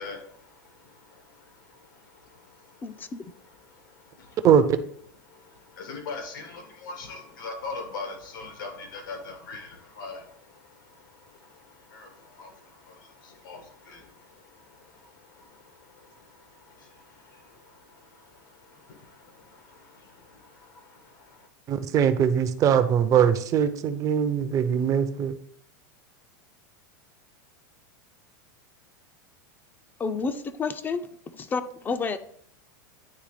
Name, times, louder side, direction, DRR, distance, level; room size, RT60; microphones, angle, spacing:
voice 1, 0.0-3.1 3.4-4.4 5.3-21.5, left 3 dB, 85° left, 3 dB, 1.7 m, -43 dB
voice 2, 2.8-3.2 30.0-31.1 31.3-32.2, left 4 dB, 20° left, 11 dB, 0.4 m, -30 dB
voice 3, 4.4-4.8 21.7-25.3, right 8 dB, 30° right, 11 dB, 0.5 m, -21 dB
9.8 x 3.3 x 3.2 m, 0.63 s
supercardioid pair, 125°, 11 cm